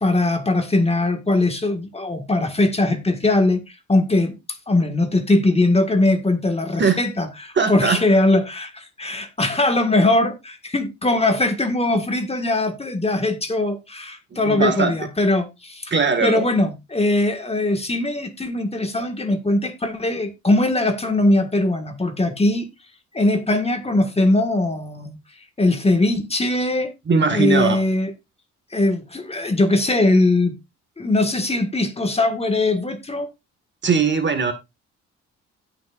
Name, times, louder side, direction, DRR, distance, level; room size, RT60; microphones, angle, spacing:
voice 1, 0.0-4.3 4.7-15.9 16.2-22.7 23.1-25.2 25.6-26.9 27.3-28.1 28.7-30.5 31.0-33.3, left 2 dB, 20° left, 1.8 m, -20 dB
voice 2, 7.5-8.0 14.3-14.9 15.9-16.5 27.1-27.8 33.8-34.5, right 5 dB, 35° right, 1.9 m, -20 dB
16.5 x 5.9 x 2.5 m
cardioid pair, 90°, 30 cm